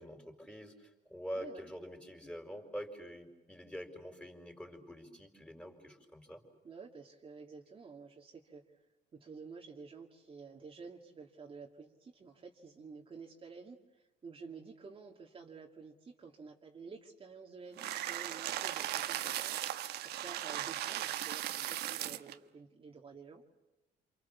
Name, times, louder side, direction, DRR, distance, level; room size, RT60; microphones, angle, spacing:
voice 1, 0.0-6.4, equal, 5° left, 4 dB, 5.1 m, -46 dB
voice 2, 1.3-1.7 6.6-8.8 9.1-23.4, right 5 dB, 30° right, 0 dB, 2.4 m, -51 dB
sound 1, 17.8-22.3, right 13 dB, 75° right, 1.3 m, -37 dB
28.5 x 27.5 x 7.1 m, 1.0 s
cardioid pair, 110°, 17 cm